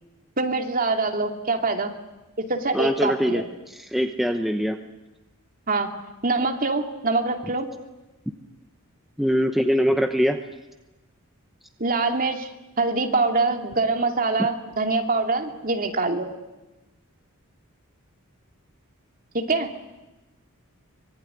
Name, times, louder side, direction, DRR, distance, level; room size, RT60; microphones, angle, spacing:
voice 1, 0.4-1.9 2.5-3.4 5.7-5.9 6.2-7.7 11.8-12.5 12.8-16.3 19.3-19.7, right 3 dB, 40° right, 4 dB, 2.6 m, -24 dB
voice 2, 2.7-4.8 9.2-10.4, equal, ahead, 5 dB, 1.0 m, -23 dB
24.5 x 22.0 x 9.9 m, 1.0 s
head